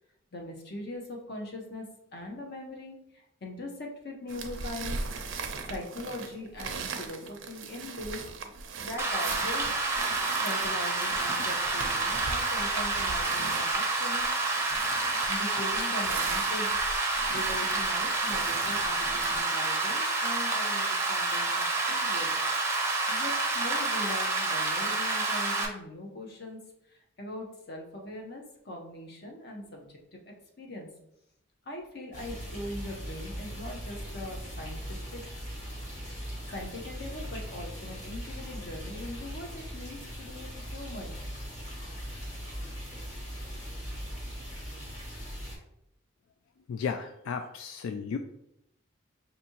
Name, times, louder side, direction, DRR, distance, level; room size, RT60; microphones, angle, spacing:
voice 1, 0.3-1.9 2.1-5.0 5.7-8.5 8.8-9.6 10.4-14.3 15.3-17.0 17.3-22.4 23.1-26.6 26.9-30.2 30.6-30.9 31.7-35.2 36.5-41.2, left 1 dB, 55° left, 0 dB, 0.8 m, -41 dB
sound 1, 4.3-19.4, right 4 dB, 75° right, 0.5 m, -40 dB
Rain, 9.0-25.6, right 3 dB, 15° right, 0.6 m, -29 dB
sound 2, 32.1-45.6, equal, 40° left, 1.6 m, -40 dB
voice 2, 46.7-48.2, left 6 dB, 90° left, 7 dB, 0.3 m, -34 dB
5.0 x 2.7 x 2.8 m, 0.78 s
head